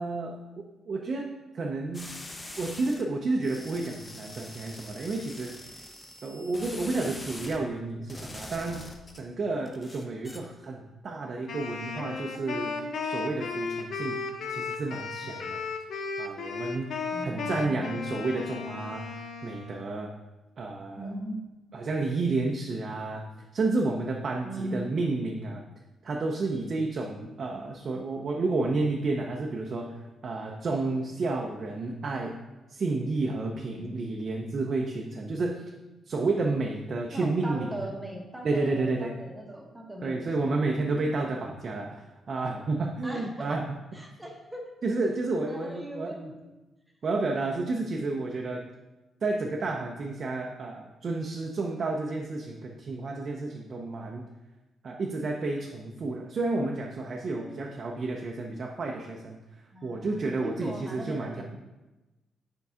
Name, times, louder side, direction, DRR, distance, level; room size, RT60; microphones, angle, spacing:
voice 1, 0.0-2.2 2.6-5.5 6.2-8.9 9.1-12.8 13.0-14.2 14.5-15.6 16.2-16.9 17.2-20.1 20.6-21.1 21.7-23.3 23.5-25.6 26.0-32.4 32.7-35.7 36.1-37.7 38.4-39.2 40.0-43.8 44.8-46.3 47.0-48.7 49.2-54.3 54.8-59.4 59.8-61.4, right 3 dB, 45° right, 0 dB, 0.6 m, -31 dB
sound 1, 1.9-3.0 3.4-7.6 8.1-9.2 9.7-10.4, left 1 dB, 20° left, 0.7 m, -43 dB
Wind instrument woodwind instrument, 11.5-19.9, left 4 dB, 65° left, 0.7 m, -35 dB
voice 2, 17.1-17.9 21.0-21.6 24.4-25.0 33.7-34.3 37.1-40.2 43.0-43.6 43.9-44.7 45.5-46.3 57.4-57.8 59.7-61.4, right 1 dB, 15° right, 0 dB, 1.0 m, -39 dB
6.9 x 4.6 x 3.6 m, 1.1 s
cardioid pair, 110°, 0 cm